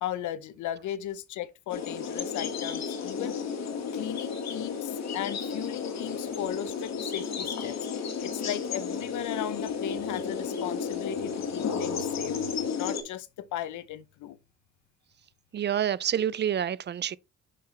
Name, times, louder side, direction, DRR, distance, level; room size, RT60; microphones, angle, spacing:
voice 1, 0.0-3.4 3.9-7.8 8.2-12.5 12.7-14.4, left 11 dB, 75° left, 0.8 m, -36 dB
sound 1, 1.7-13.0, left 6 dB, 60° left, 1.8 m, -33 dB
voice 2, 15.5-17.2, right 9 dB, 35° right, 0.4 m, -28 dB
6.5 x 5.6 x 3.2 m
cardioid pair, 90°, 30 cm